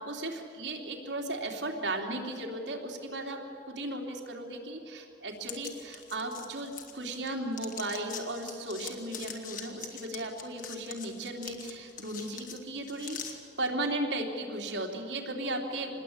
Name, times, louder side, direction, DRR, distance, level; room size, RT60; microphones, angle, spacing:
voice 1, 0.0-3.4 3.7-16.0, right 1 dB, 85° right, 1 dB, 3.4 m, -36 dB
sound 1, 5.4-7.3 7.5-13.3, left 7 dB, 50° left, 2.5 m, -43 dB
27.0 x 20.5 x 8.9 m, 2.6 s
head